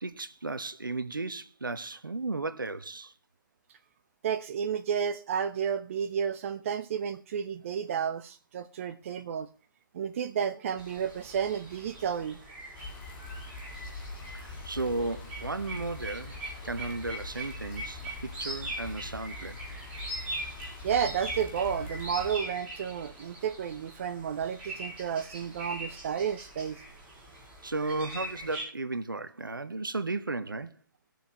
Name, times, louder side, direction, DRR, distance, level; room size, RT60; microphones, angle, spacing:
voice 1, 0.0-3.1 14.3-16.4 16.6-19.6 27.6-30.7, right 3 dB, 75° right, 1.1 m, -34 dB
voice 2, 4.2-9.5 9.9-12.4 20.8-26.8, right 8 dB, 40° right, 0.9 m, -31 dB
sound 1, 10.8-28.6, right 1 dB, 10° right, 5.6 m, -42 dB
sound 2, 12.7-22.4, left 3 dB, 30° left, 2.0 m, -43 dB
20.0 x 7.1 x 3.0 m
figure-of-eight pair, 130°, 11 cm